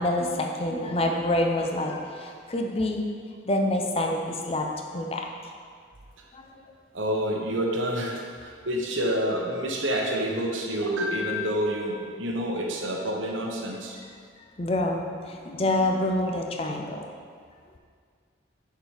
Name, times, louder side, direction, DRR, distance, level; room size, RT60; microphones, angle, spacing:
voice 1, 0.0-3.1 3.5-4.7 4.9-5.3 6.3-6.5 12.2-12.3 14.6-17.0, left 1 dB, 30° left, 2 dB, 0.6 m, -27 dB
voice 2, 6.9-14.0, equal, 80° right, 0 dB, 1.0 m, -28 dB
6.6 x 4.8 x 4.9 m, 2.1 s
head